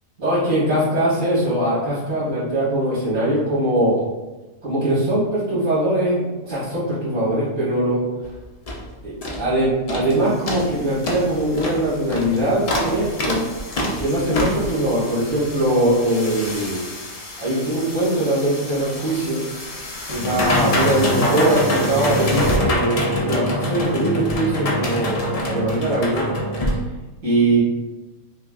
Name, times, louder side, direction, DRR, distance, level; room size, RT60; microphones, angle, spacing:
voice 1, 0.2-3.9 4.6-8.0 9.0-13.4 14.0-16.8 17.4-19.4 20.1-26.2 27.2-27.6, right 1 dB, 65° right, -9 dB, 1.8 m, -21 dB
sound 1, 8.2-8.3 8.7-8.9 9.2-9.5 9.9-10.1 10.5-26.7, equal, 70° left, 0.3 m, -25 dB
5.4 x 2.3 x 2.4 m, 1.2 s
omnidirectional pair, 1.5 m